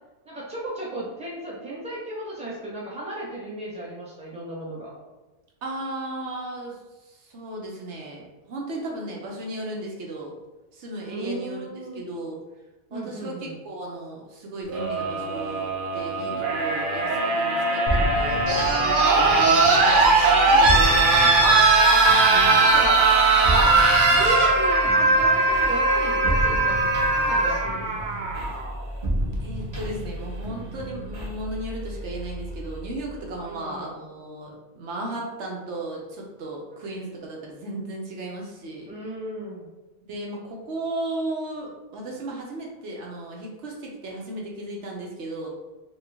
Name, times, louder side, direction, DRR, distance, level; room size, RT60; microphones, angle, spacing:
voice 1, 0.2-4.9 11.0-12.0 12.9-13.6 20.5-21.3 22.5-23.0 24.1-26.8 27.1-28.2 33.3-34.0 38.9-39.7, right 1 dB, 5° right, -5 dB, 0.8 m, -35 dB
voice 2, 5.6-6.8 7.1-10.3 10.7-11.7 12.0-12.4 12.9-19.7 20.4-20.8 22.3-22.7 23.0-23.1 23.7-24.0 29.4-38.9 40.1-45.5, right 2 dB, 70° right, -1 dB, 1.0 m, -35 dB
sound 1, 14.7-28.7 29.9-30.0, right 3 dB, 55° right, 0.7 m, -20 dB
sound 2, 17.9-33.5, right 1 dB, 35° right, 1.2 m, -31 dB
4.3 x 2.3 x 3.3 m, 1.1 s
omnidirectional pair, 1.2 m